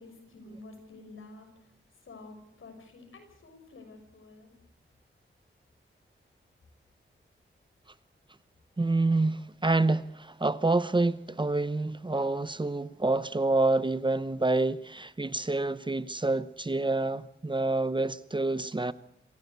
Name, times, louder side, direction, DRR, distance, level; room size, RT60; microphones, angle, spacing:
voice 1, 0.0-1.5 2.0-4.5, left 2 dB, 80° left, 6.1 m, -49 dB
voice 2, 8.8-18.9, right 2 dB, 25° right, 0.8 m, -27 dB
26.0 x 15.5 x 8.2 m
wide cardioid pair, 75°, 21 cm